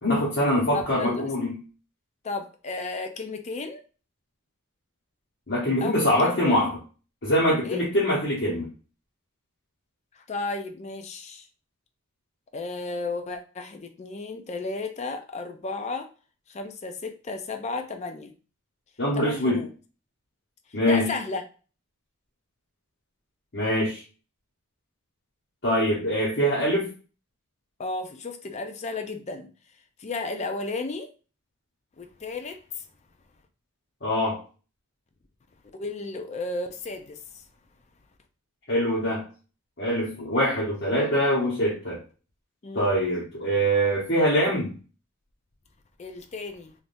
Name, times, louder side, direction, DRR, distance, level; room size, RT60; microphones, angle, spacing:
voice 1, 0.0-1.6 5.5-6.7 7.2-8.7 19.0-19.6 20.7-21.1 23.5-24.0 25.6-26.9 34.0-34.4 38.7-39.2 39.8-42.0 42.7-44.8, equal, 55° left, -6 dB, 1.1 m, -23 dB
voice 2, 0.7-1.2 2.2-3.8 5.8-6.0 6.2-6.6 7.6-7.8 10.1-11.5 12.5-16.1 16.5-18.3 19.1-19.7 20.9-21.4 27.8-29.5 30.0-31.1 32.0-32.8 35.7-37.4 42.6-42.9 46.0-46.7, left 3 dB, 35° left, 6 dB, 0.4 m, -33 dB
3.4 x 2.5 x 2.6 m, 0.36 s
head